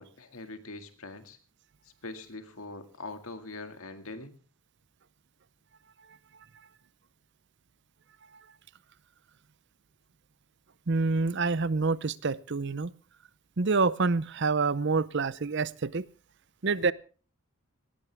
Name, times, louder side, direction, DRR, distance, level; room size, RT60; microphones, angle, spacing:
voice 1, 0.0-1.4 2.0-4.4, left 2 dB, 75° left, 8 dB, 2.1 m, -42 dB
voice 2, 10.9-12.9 13.6-16.1 16.6-16.9, right 4 dB, 50° right, 19 dB, 0.6 m, -27 dB
19.0 x 17.0 x 3.5 m, 0.37 s
head